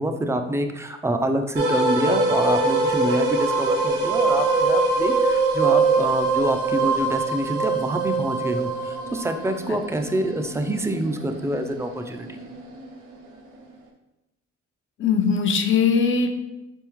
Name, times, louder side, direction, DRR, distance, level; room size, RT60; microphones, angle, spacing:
voice 1, 0.0-12.4, right 1 dB, 10° right, 5 dB, 0.4 m, -26 dB
sound 1, 1.6-12.7, right 3 dB, 85° right, 0.7 m, -23 dB
voice 2, 15.0-16.4, left 5 dB, 40° left, 6 dB, 0.6 m, -20 dB
4.5 x 3.5 x 3.0 m, 0.98 s
cardioid pair, 90°, 30 cm